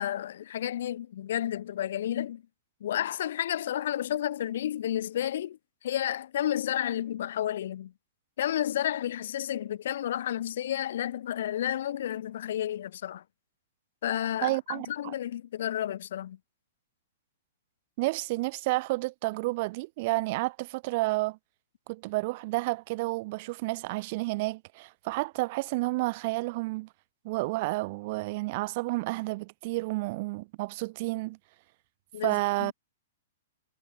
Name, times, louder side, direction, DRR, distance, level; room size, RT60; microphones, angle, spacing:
voice 1, 0.0-2.4 2.8-5.6 5.8-7.9 8.4-13.2 14.0-16.4 32.1-32.7, left 11 dB, 60° left, 6.1 m, -31 dB
voice 2, 14.4-15.1 18.0-21.4 21.9-26.9 27.2-31.4 32.2-32.7, right 22 dB, 45° right, 3.0 m, -30 dB
figure-of-eight pair, 110°, 0 cm